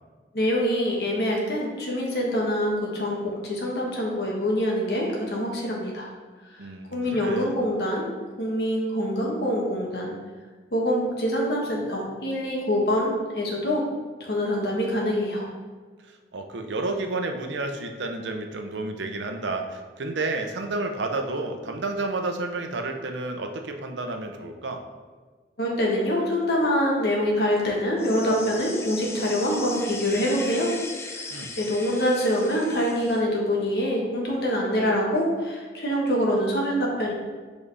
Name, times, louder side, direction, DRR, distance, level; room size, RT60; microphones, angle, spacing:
voice 1, 0.3-6.1 6.9-8.0 8.4-10.1 10.7-13.8 14.2-15.5 25.6-30.7 31.2-37.1, equal, 65° left, -2 dB, 1.3 m, -25 dB
voice 2, 6.6-7.6 16.0-24.8 31.3-31.5, right 2 dB, 90° right, 4 dB, 0.6 m, -31 dB
sound 1, 28.0-33.2, left 3 dB, 15° left, 0.3 m, -38 dB
7.2 x 4.1 x 3.3 m, 1.4 s
head